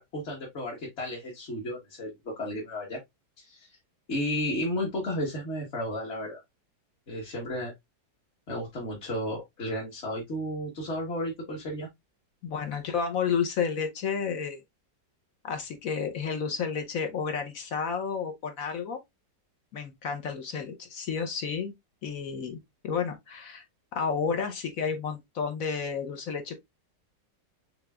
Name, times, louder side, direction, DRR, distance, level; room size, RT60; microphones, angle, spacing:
voice 1, 0.0-3.0 3.4-3.7 4.1-6.4 7.1-7.7 8.5-11.9, left 1 dB, 40° left, 1.4 m, -33 dB
voice 2, 12.4-14.6 15.4-19.0 19.7-21.7 22.0-22.6 22.8-23.6 23.9-26.6, left 6 dB, 60° left, 1.1 m, -31 dB
5.9 x 3.4 x 2.2 m
omnidirectional pair, 1.9 m